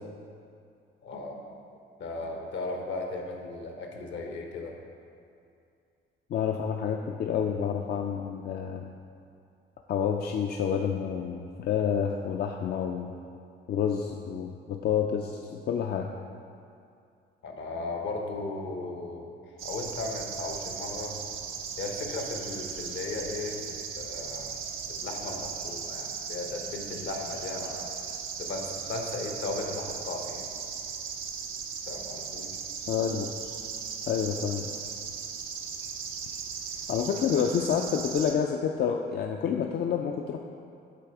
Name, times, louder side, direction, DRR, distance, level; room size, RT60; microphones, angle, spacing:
voice 1, 1.0-1.4 2.0-4.7 17.4-19.3 19.6-21.1 21.8-24.6 24.9-27.9 28.4-30.4 31.9-32.6, left 3 dB, 70° left, 2 dB, 1.0 m, -36 dB
voice 2, 6.3-8.9 9.9-13.1 13.7-16.1 32.9-33.3 34.1-34.7 36.9-40.4, left 7 dB, 55° left, 2 dB, 0.4 m, -29 dB
sound 1, 19.6-38.3, right 6 dB, 90° right, 0.6 m, -37 dB
8.4 x 3.4 x 4.5 m, 2.4 s
cardioid pair, 90°, 20 cm